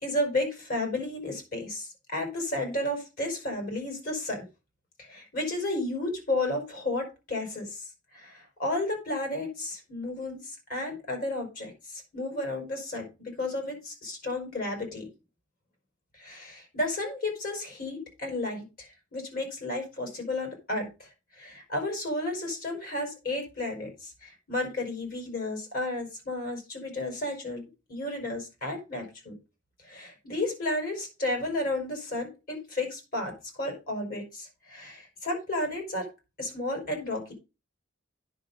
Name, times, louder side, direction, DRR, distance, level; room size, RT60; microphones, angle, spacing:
voice 1, 0.0-4.4 5.0-15.1 16.2-21.1 21.4-29.3 29.8-33.3 33.6-36.1 36.4-37.3, left 2 dB, 45° left, 2 dB, 5.1 m, -32 dB
9.9 x 5.5 x 5.5 m, 0.28 s
head